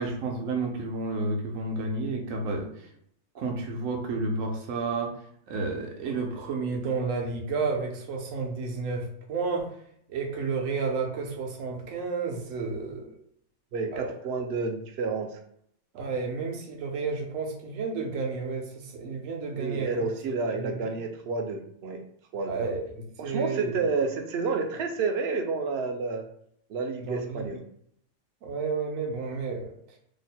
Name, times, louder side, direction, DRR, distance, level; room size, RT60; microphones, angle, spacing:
voice 1, 0.0-2.9 3.3-5.1 5.5-9.7 10.1-13.1 13.9-14.1 15.9-20.1 20.5-20.9 22.5-23.8 27.0-27.5 28.4-29.7, right 4 dB, 85° right, 1 dB, 1.1 m, -31 dB
voice 2, 13.7-15.4 19.6-22.0 22.3-22.6 23.2-26.2 26.7-27.6, right 4 dB, 65° right, 5 dB, 0.7 m, -30 dB
3.0 x 2.1 x 4.1 m, 0.68 s
omnidirectional pair, 1.4 m